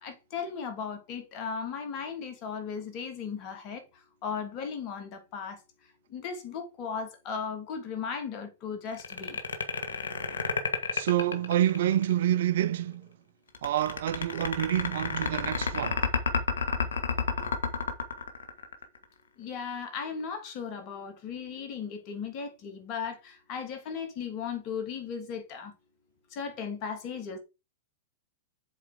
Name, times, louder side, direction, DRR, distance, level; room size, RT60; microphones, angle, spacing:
voice 1, 0.0-3.8 4.2-5.6 6.1-9.4 19.4-25.7 26.3-27.4, left 6 dB, 45° left, 2.7 m, -36 dB
sound 1, 8.9-12.1 13.5-19.0, left 5 dB, 80° left, 1.7 m, -30 dB
voice 2, 10.9-13.1 13.6-16.1, right 12 dB, 65° right, 0.6 m, -27 dB
7.4 x 4.2 x 6.5 m
hypercardioid pair, 110°, 0 cm